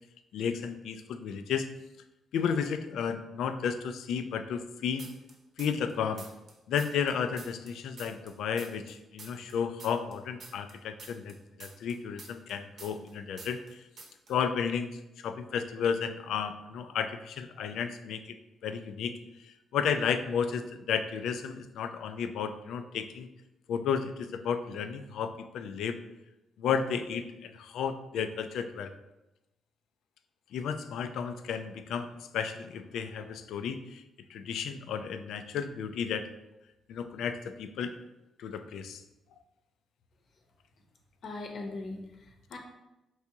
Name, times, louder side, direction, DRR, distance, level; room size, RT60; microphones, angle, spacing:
voice 1, 0.3-1.7 2.3-5.1 5.6-6.3 6.7-13.8 14.3-18.4 18.6-19.2 19.4-23.3 23.7-26.0 26.6-29.0 30.5-34.0 34.3-36.3 36.9-37.9 38.4-39.0, left 7 dB, 80° left, 9 dB, 0.3 m, -33 dB
sound 1, 5.0-5.9 6.2-8.9 9.2-13.1 13.4-13.7 14.0-14.3, right 3 dB, 50° right, 0.7 m, -48 dB
voice 2, 41.2-42.6, left 2 dB, 50° left, 2 dB, 0.8 m, -40 dB
4.6 x 3.5 x 2.8 m, 0.97 s
cardioid pair, 135°, 0 cm